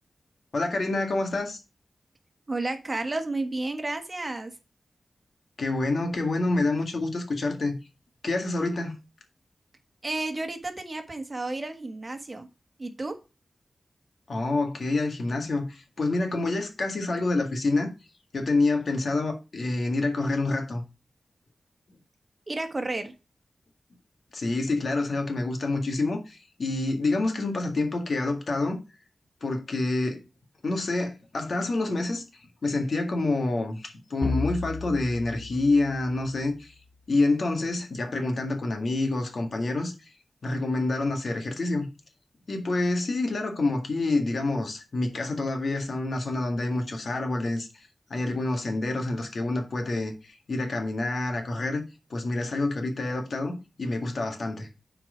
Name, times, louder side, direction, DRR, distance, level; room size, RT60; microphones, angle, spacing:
voice 1, 0.5-1.6 5.6-7.8 8.2-8.9 14.3-17.9 18.3-20.8 24.3-28.8 29.4-30.2 30.6-32.2 32.6-36.7 37.1-40.1 40.4-41.9 42.5-51.8 52.1-54.7, left 2 dB, 65° left, 1.9 m, -27 dB
voice 2, 2.5-4.5 10.0-12.5 12.8-13.1 22.5-23.1, right 2 dB, 35° right, 1.4 m, -31 dB
sound 1, 34.2-36.8, left 3 dB, 5° left, 2.0 m, -34 dB
8.1 x 4.7 x 5.1 m
wide cardioid pair, 75°, 0 cm